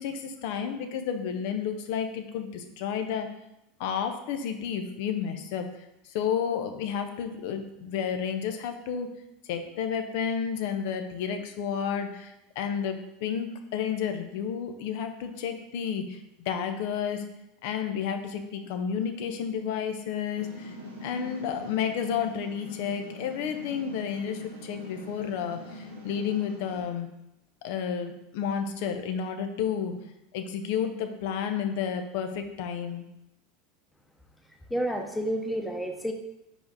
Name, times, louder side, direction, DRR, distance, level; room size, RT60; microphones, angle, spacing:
voice 1, 0.0-3.3 3.8-5.7 6.1-9.1 9.5-17.2 17.6-20.7 21.0-27.1 27.6-29.9 30.3-33.0, left 7 dB, 65° left, 6 dB, 0.7 m, -31 dB
sound 1, 20.3-26.8, left 1 dB, 90° right, 1.4 m, -42 dB
voice 2, 34.7-36.1, right 1 dB, 5° left, 4 dB, 0.9 m, -30 dB
5.3 x 4.8 x 4.0 m, 0.87 s
hypercardioid pair, 85°, 0 cm